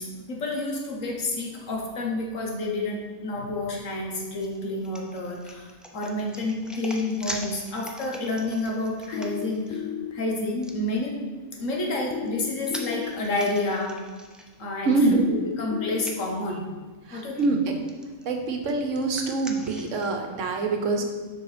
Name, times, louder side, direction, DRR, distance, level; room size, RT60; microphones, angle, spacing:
voice 1, 0.0-11.2 11.6-14.0 14.6-14.9 15.6-16.7 17.1-17.6, left 2 dB, 65° left, 0 dB, 1.6 m, -29 dB
sound 1, 4.3-9.8 10.6-10.7 11.9-14.9 15.3-15.4 15.9-16.2 17.1-17.5 17.9-20.1, equal, ahead, 0.3 m, -42 dB
sound 2, 9.1-10.1 12.1-13.1 15.1-16.1, left 11 dB, 80° left, 1.0 m, -33 dB
voice 2, 14.8-15.3 17.0-17.8 18.2-21.0, right 3 dB, 65° right, 4 dB, 1.2 m, -25 dB
7.4 x 5.4 x 5.0 m, 1.3 s
omnidirectional pair, 1.4 m